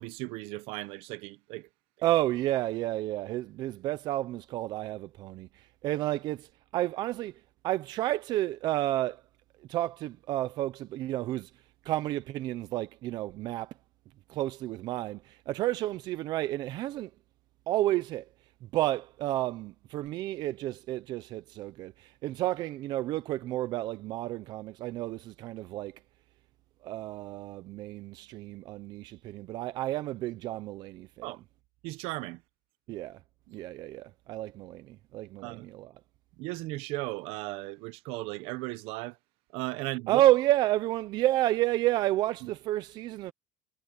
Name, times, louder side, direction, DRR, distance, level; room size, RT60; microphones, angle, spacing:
voice 1, 0.0-1.7 31.2-31.4 31.8-32.4 35.4-35.7 36.4-39.2 39.5-40.2, right 21 dB, 60° right, 0.8 m, -36 dB
voice 2, 2.0-9.2 9.7-13.8 14.3-17.1 17.7-18.3 18.6-26.0 26.8-31.3 32.9-33.2 33.5-35.9 40.1-43.3, right 15 dB, 40° right, 0.5 m, -31 dB
cardioid pair, 175°, 11 cm